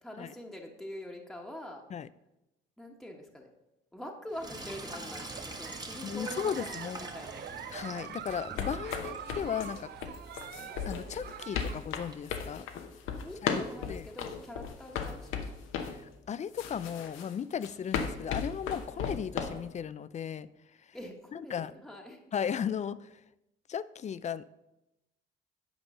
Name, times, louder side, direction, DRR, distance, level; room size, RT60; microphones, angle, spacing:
voice 1, 0.0-1.8 2.8-3.5 3.9-7.4 8.7-9.7 13.2-15.6 18.9-19.0 20.9-22.2, equal, ahead, 0 dB, 1.2 m, -45 dB
Sink (filling or washing), 4.3-12.1, right 2 dB, 20° right, 1.2 m, -45 dB
Giggle, 5.2-11.9, right 9 dB, 55° right, 0.6 m, -45 dB
voice 2, 6.0-7.0 7.7-9.9 10.6-12.6 13.4-13.6 13.9-14.1 15.9-20.5 21.3-21.7 22.3-23.1 23.7-24.4, left 8 dB, 35° left, 17 dB, 0.4 m, -36 dB
sound 1, 8.3-16.0 16.6-19.6, left 7 dB, 85° left, 0.9 m, -36 dB
8.8 x 5.3 x 5.5 m, 0.93 s
cardioid pair, 90°, 20 cm